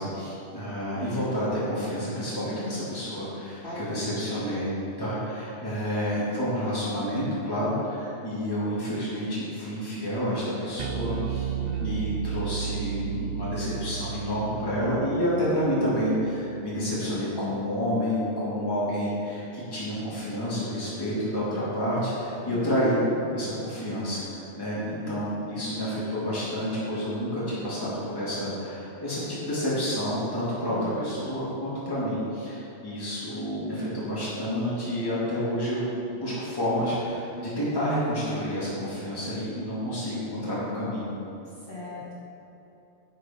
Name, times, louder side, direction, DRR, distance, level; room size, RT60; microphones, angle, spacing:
voice 1, 0.0-4.7 5.0-23.0 23.3-35.8 36.1-41.1, equal, 20° left, -10 dB, 2.4 m, -29 dB
voice 2, 3.6-4.0 11.6-12.2 22.4-23.2 24.9-25.5 30.6-31.1 41.7-42.2, left 2 dB, 45° left, -10 dB, 2.8 m, -38 dB
Bass guitar, 10.8-17.2, right 9 dB, 85° right, 0.3 m, -34 dB
11.0 x 6.6 x 4.4 m, 2.9 s
omnidirectional pair, 1.3 m